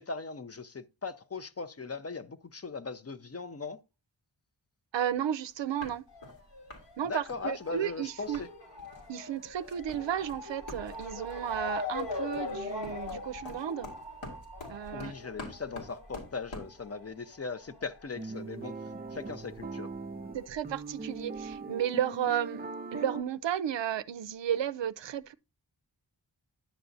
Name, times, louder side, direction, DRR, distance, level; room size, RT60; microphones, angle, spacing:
voice 1, 0.0-3.8 7.1-8.5 14.9-18.8 19.1-19.9, left 4 dB, 35° left, 0.5 m, -39 dB
voice 2, 4.9-6.0 7.0-8.4 9.1-13.9 14.7-15.1 20.3-25.3, right 10 dB, 70° right, 0.5 m, -33 dB
sound 1, 5.5-5.6 5.8-6.4 6.7-6.9 7.1-8.5 8.8-9.1 9.4-16.8, left 2 dB, 85° left, 2.3 m, -47 dB
Motor vehicle (road) / Siren, 6.1-19.1 19.4-20.5 21.2-21.3 21.5-21.6, left 3 dB, 65° left, 2.1 m, -42 dB
sound 2, 18.2-23.2, right 3 dB, 20° right, 0.4 m, -40 dB
10.0 x 6.8 x 2.6 m
wide cardioid pair, 50°, 45 cm